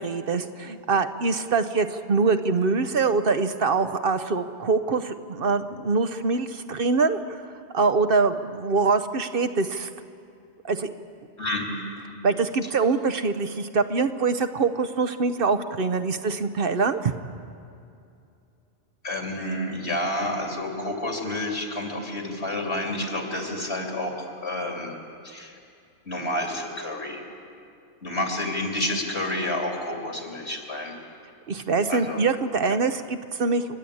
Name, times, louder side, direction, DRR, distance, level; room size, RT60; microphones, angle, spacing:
voice 1, 0.0-7.4 7.7-9.9 10.6-10.9 12.2-17.1 31.5-33.8, right 4 dB, 60° right, 9 dB, 1.0 m, -24 dB
voice 2, 11.4-11.7 19.0-25.0 25.2-25.5 26.0-27.2 28.0-31.0 31.9-32.2, left 1 dB, 70° left, 1 dB, 3.4 m, -29 dB
30.0 x 11.0 x 8.6 m, 2.5 s
omnidirectional pair, 1.1 m